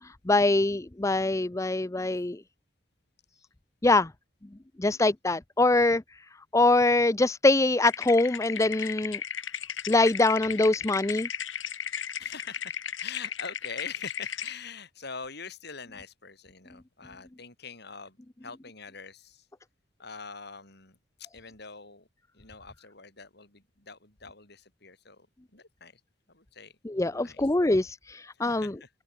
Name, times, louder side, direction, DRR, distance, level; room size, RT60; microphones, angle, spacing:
voice 1, 0.3-2.4 3.8-4.1 4.8-6.0 6.5-9.2 9.9-11.3 26.8-28.8, left 2 dB, 15° left, 0.5 m, -23 dB
sound 1, 7.8-14.5, left 8 dB, 90° left, 5.6 m, -35 dB
voice 2, 12.2-18.2 18.4-19.4 20.0-21.0 21.3-22.0 22.4-25.3 25.5-25.9 26.3-26.7 27.1-27.5 28.4-28.9, left 5 dB, 60° left, 6.9 m, -44 dB
open air
head